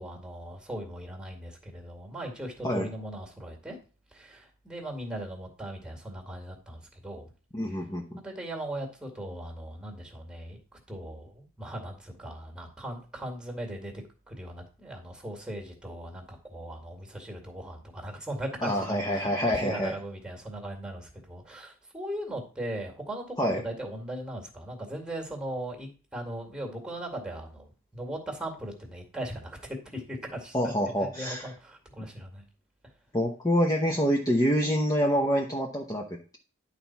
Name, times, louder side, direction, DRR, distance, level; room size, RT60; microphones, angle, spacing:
voice 1, 0.0-3.8 4.1-7.3 8.2-10.6 10.9-27.7 27.9-29.6 29.9-30.7 31.0-32.4, right 1 dB, 5° right, 2 dB, 2.1 m, -38 dB
voice 2, 7.5-8.2 18.6-19.9 23.4-23.6 30.5-31.5 33.1-36.1, equal, 15° left, 0 dB, 0.9 m, -26 dB
11.0 x 4.2 x 5.9 m, 0.36 s
head